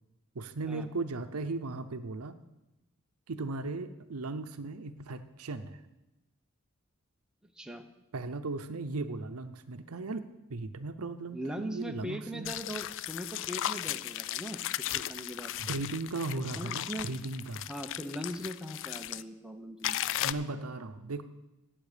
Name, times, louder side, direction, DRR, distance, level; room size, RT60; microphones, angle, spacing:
voice 1, 0.3-2.4 3.3-5.8 8.1-12.5 15.7-17.7 20.2-21.2, right 3 dB, 80° right, 10 dB, 0.7 m, -37 dB
voice 2, 7.4-7.9 11.3-15.8 16.6-17.1 17.7-20.0, right 1 dB, 5° right, 4 dB, 0.8 m, -40 dB
sound 1, 12.4-19.2 19.8-20.3, left 13 dB, 60° left, 0.4 m, -36 dB
17.5 x 7.5 x 5.0 m, 0.98 s
head